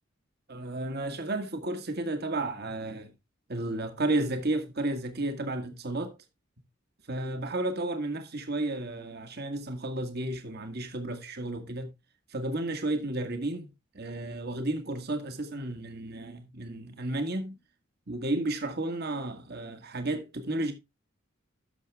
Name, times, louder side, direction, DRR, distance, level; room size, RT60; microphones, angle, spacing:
voice 1, 0.5-3.1 3.5-6.1 7.1-11.9 12.3-13.7 13.9-17.6 18.1-20.7, right 2 dB, 50° right, 1.8 m, -32 dB
12.0 x 6.7 x 3.4 m
head